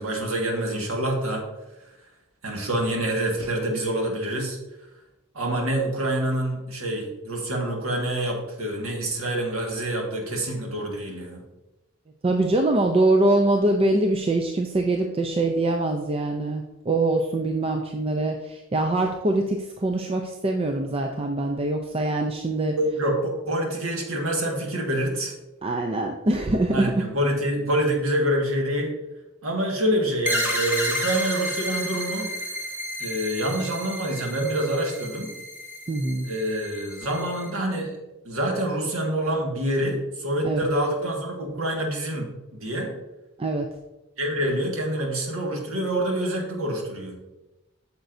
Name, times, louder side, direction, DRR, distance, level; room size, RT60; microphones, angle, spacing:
voice 1, 0.0-1.4 2.4-4.6 5.3-11.4 22.8-25.3 26.7-29.0 29.4-32.3 33.0-35.3 36.2-38.0 38.2-42.9 44.2-47.1, right 1 dB, 85° right, 0 dB, 1.7 m, -26 dB
voice 2, 12.2-23.0 25.6-27.1 35.9-36.3 40.4-40.7 43.4-43.7, right 2 dB, 25° right, 3 dB, 0.4 m, -23 dB
sound 1, 30.2-37.5, equal, 10° right, 1.8 m, -31 dB
9.0 x 6.8 x 2.6 m, 1.0 s
head